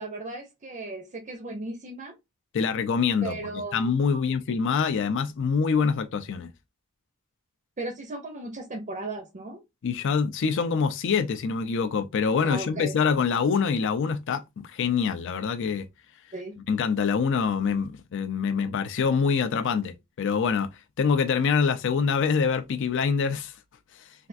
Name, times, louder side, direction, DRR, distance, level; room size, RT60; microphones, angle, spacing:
voice 1, 0.0-2.1 3.2-4.2 7.8-9.6 12.4-12.9 16.3-16.5, right 2 dB, 35° right, 0.5 m, -36 dB
voice 2, 2.5-6.5 9.8-15.9 16.7-20.7 21.0-23.5, left 6 dB, 55° left, 0.4 m, -25 dB
3.3 x 2.4 x 2.4 m
head